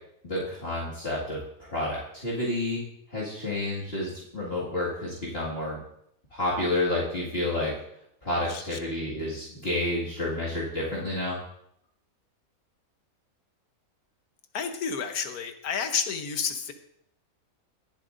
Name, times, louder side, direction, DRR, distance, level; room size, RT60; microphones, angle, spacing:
voice 1, 0.2-1.4 1.7-2.8 3.1-5.8 6.3-7.7 8.2-11.4, left 1 dB, 40° left, -8 dB, 2.3 m, -30 dB
voice 2, 14.5-16.7, left 6 dB, 75° left, 7 dB, 1.5 m, -30 dB
19.5 x 7.4 x 2.6 m, 0.74 s
omnidirectional pair, 1.6 m